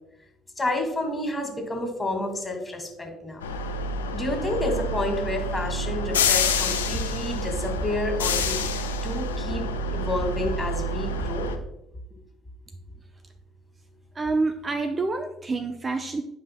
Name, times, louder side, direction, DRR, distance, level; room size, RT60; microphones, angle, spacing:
voice 1, 0.6-3.4 4.1-8.6 9.0-9.6 9.9-11.5, left 2 dB, 20° left, 3 dB, 2.0 m, -29 dB
sound 1, 3.4-11.6, left 2 dB, 85° left, 0.5 m, -27 dB
voice 2, 14.1-16.2, right 3 dB, 30° right, 7 dB, 0.6 m, -27 dB
11.0 x 5.1 x 2.2 m, 0.82 s
hypercardioid pair, 50°, 0 cm